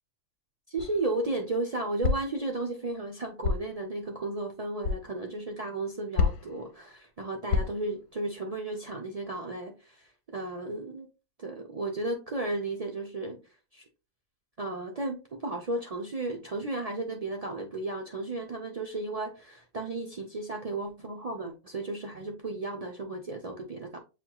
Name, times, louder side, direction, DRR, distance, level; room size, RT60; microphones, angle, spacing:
voice 1, 0.7-11.1 11.4-13.4 13.7-13.8 14.6-24.0, right 2 dB, 65° right, 0.3 m, -34 dB
sound 1, 0.8-1.1 2.0-2.4 3.4-3.8 4.8-5.0 6.2-6.6 7.5-7.9, left 5 dB, 75° left, 1.1 m, -28 dB
7.5 x 3.0 x 2.2 m
omnidirectional pair, 1.6 m